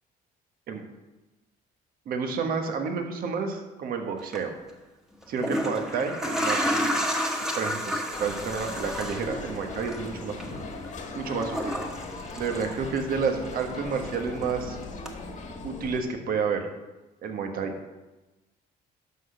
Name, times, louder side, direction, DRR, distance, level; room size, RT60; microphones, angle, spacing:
voice 1, 2.0-4.5 5.3-7.0 7.3-10.4 11.1-11.7 12.3-14.8 15.6-16.7 17.2-17.7, right 5 dB, 60° right, 4 dB, 1.4 m, -30 dB
sound 1, 4.2-4.4 5.2-13.2 13.5-14.6 15.1-15.2, equal, 5° right, 1.3 m, -31 dB
sound 2, 8.1-16.0, left 3 dB, 45° left, 1.6 m, -39 dB
11.0 x 4.1 x 6.5 m, 1.1 s
cardioid pair, 110°, 17 cm